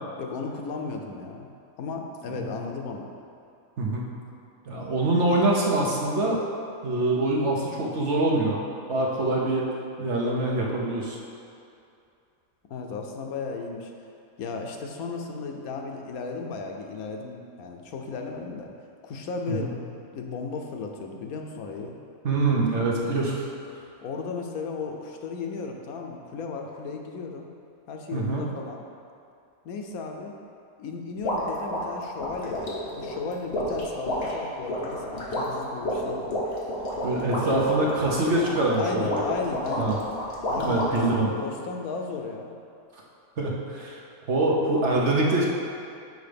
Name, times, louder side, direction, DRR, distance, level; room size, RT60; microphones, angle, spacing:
voice 1, 0.2-1.5 1.8-3.1 12.7-13.9 14.4-18.7 19.0-19.9 20.1-22.0 24.0-27.5 27.9-28.8 29.6-30.3 30.8-36.4 38.8-40.0 40.5-42.6, left 4 dB, 80° left, 2 dB, 1.2 m, -35 dB
voice 2, 4.7-6.4 6.8-8.6 8.9-9.7 10.0-11.2 19.5-19.7 22.2-23.4 28.1-28.4 37.0-39.2 39.8-40.0 40.6-41.3 43.4-44.0 44.3-45.5, right 2 dB, 55° right, -2 dB, 1.2 m, -24 dB
sound 1, 31.2-41.1, equal, 45° left, 1.4 m, -30 dB
6.7 x 4.9 x 5.2 m, 2.5 s
omnidirectional pair, 1.5 m